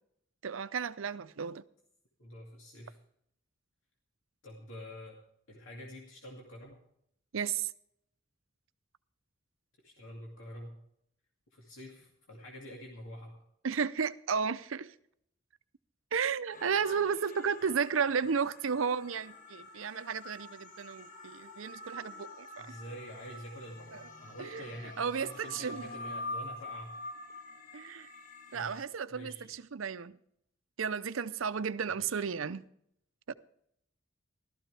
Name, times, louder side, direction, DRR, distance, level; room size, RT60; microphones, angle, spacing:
voice 1, 0.4-1.6 7.3-7.7 13.6-14.9 16.1-22.7 23.9-24.0 24.4-24.6 25.0-25.8 27.7-28.1 28.5-30.2 30.8-32.6 33.3-33.4, right 6 dB, 90° right, 13 dB, 0.6 m, -33 dB
voice 2, 2.2-3.0 4.4-5.2 5.5-6.8 9.8-10.7 11.5-13.4 22.6-26.9 28.5-28.7 29.1-29.5 31.9-32.2, equal, 80° left, -1 dB, 2.4 m, -47 dB
sound 1, 16.5-28.9, left 2 dB, 45° left, 1.4 m, -46 dB
15.0 x 13.0 x 3.3 m, 0.71 s
head